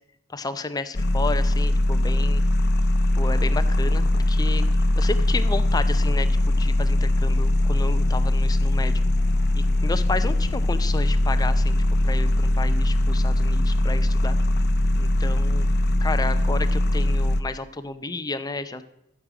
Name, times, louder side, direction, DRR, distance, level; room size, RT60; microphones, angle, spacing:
voice 1, 0.3-2.4 3.2-4.6 5.0-6.3 6.6-8.9 9.8-11.8 12.0-14.4 15.0-15.7 16.0-18.8, left 3 dB, 20° left, 10 dB, 0.6 m, -31 dB
sound 1, 0.9-17.4, left 1 dB, 55° left, 0.7 m, -21 dB
14.0 x 6.8 x 4.9 m, 0.85 s
head